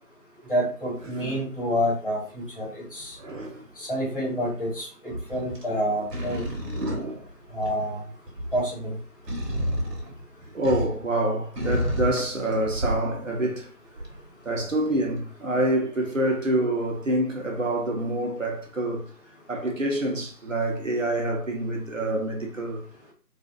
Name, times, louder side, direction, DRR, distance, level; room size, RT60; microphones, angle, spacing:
voice 1, 0.5-3.1 3.8-6.4 7.5-8.0 8.5-8.9, equal, 35° left, 1.2 m, -28 dB
sound 1, 2.6-3.0 5.3-5.7 6.1-7.9 8.3-11.1 11.5-13.2 14.0-14.2 14.9-15.0, equal, 90° right, 0.9 m, -31 dB
voice 2, 3.2-3.6 5.0-5.2 6.7-7.2 10.0-10.1 10.5-14.0 14.4-19.0 19.5-22.8, right 1 dB, 55° right, 0.6 m, -27 dB
2.4 x 2.3 x 2.3 m
figure-of-eight pair, 165°, 47 cm